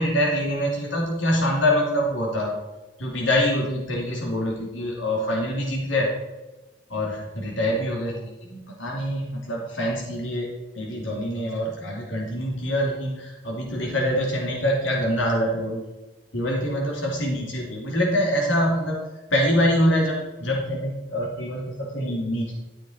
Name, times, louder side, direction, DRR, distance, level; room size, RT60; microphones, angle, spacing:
voice 1, 0.0-2.6 3.0-6.1 6.9-10.5 10.7-15.8 16.3-19.0 19.3-22.5, equal, 80° left, -1 dB, 2.9 m, -25 dB
12.5 x 7.6 x 4.4 m, 1.1 s
head